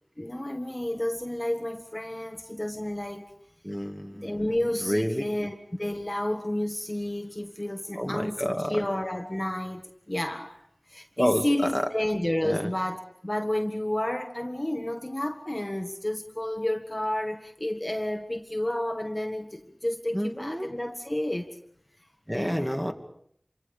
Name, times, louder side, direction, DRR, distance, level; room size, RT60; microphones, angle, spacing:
voice 1, 0.2-3.3 4.1-10.6 10.9-21.5 22.3-22.8, left 1 dB, 25° left, 4 dB, 1.6 m, -31 dB
voice 2, 3.6-4.4 4.8-5.2 8.0-8.9 11.2-11.9 12.4-12.7 20.1-20.7 22.3-22.9, equal, 5° right, 3 dB, 2.3 m, -29 dB
27.0 x 24.5 x 5.2 m, 0.69 s
wide cardioid pair, 40°, 0 cm